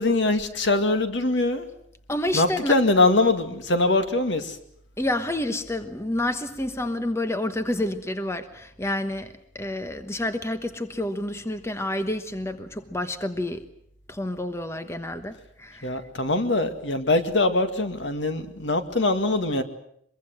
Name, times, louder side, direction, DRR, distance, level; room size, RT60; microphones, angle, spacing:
voice 1, 0.0-1.7 2.3-4.6 15.8-19.6, left 2 dB, 75° left, 2.1 m, -22 dB
voice 2, 2.1-2.7 5.0-13.6 14.1-16.0, left 1 dB, 15° left, 1.2 m, -29 dB
23.5 x 23.0 x 7.8 m
head